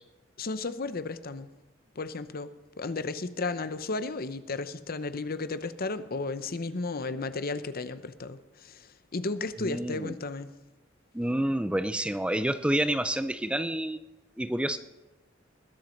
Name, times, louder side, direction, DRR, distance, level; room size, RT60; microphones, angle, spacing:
voice 1, 0.4-1.5 2.0-10.5, left 3 dB, 50° left, 13 dB, 0.8 m, -34 dB
voice 2, 9.6-10.2 11.1-14.0 14.4-14.8, right 1 dB, 5° right, 12 dB, 0.5 m, -28 dB
20.5 x 7.5 x 5.2 m, 1.1 s
head